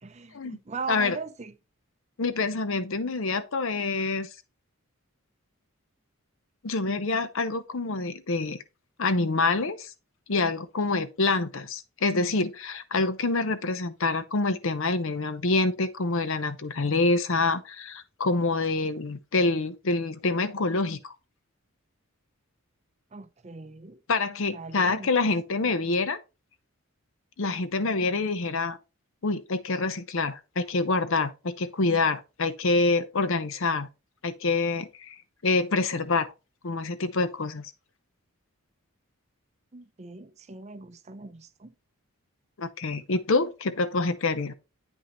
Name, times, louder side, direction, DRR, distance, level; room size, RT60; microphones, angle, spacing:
voice 1, 0.0-1.5 23.1-24.0 24.5-25.1 25.6-25.7 39.7-41.7, right 4 dB, 30° right, 0.5 m, -39 dB
voice 2, 2.2-4.3 6.6-8.6 9.0-9.9 10.3-21.1 24.1-26.2 27.4-28.8 29.2-33.9 34.2-35.2 35.4-36.3 36.6-37.7 42.6-44.5, left 3 dB, 60° left, 0.7 m, -26 dB
8.8 x 5.5 x 3.0 m
head